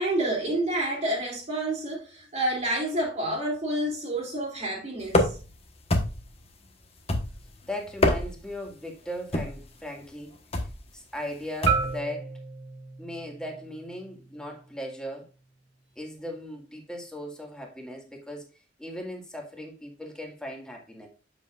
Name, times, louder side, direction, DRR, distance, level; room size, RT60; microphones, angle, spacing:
voice 1, 0.0-5.3, right 1 dB, 40° right, 2.3 m, -29 dB
sound 1, 5.1-5.5 5.9-6.4 7.1-7.5 7.9-8.5 9.3-9.7 10.5-10.8 11.6-12.0, left 1 dB, 35° left, 1.2 m, -25 dB
voice 2, 7.7-10.4 10.9-12.3 13.0-15.3 16.0-18.5 18.8-21.1, left 1 dB, 5° left, 1.9 m, -38 dB
Marimba xylophone, 11.7-15.8, right 7 dB, 90° right, 1.2 m, -34 dB
8.0 x 7.2 x 2.4 m
head